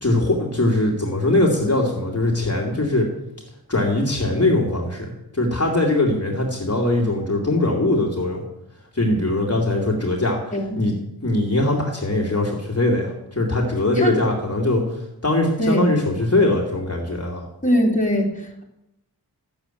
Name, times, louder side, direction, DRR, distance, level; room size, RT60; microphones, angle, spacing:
voice 1, 0.0-3.1 3.7-8.4 8.9-10.9 11.2-17.5, left 2 dB, 40° left, -1 dB, 2.4 m, -21 dB
voice 2, 17.6-18.6, equal, 20° left, 0 dB, 3.2 m, -21 dB
13.5 x 7.1 x 9.0 m, 0.84 s
wide cardioid pair, 75°, 39 cm